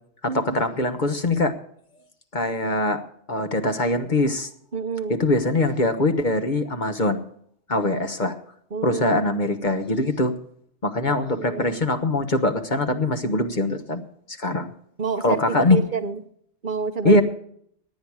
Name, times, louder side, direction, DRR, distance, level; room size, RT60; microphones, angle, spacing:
voice 1, 0.3-1.5 2.3-4.5 5.1-7.2 7.7-8.3 8.8-10.3 10.8-14.0 14.3-14.7 15.2-15.8 17.0-17.2, left 2 dB, 40° left, 7 dB, 1.3 m, -22 dB
voice 2, 4.7-5.2 8.7-9.2 11.1-11.8 15.0-16.2 16.6-17.1, right 5 dB, 45° right, 8 dB, 1.1 m, -29 dB
17.5 x 10.0 x 4.7 m, 0.66 s
omnidirectional pair, 1.2 m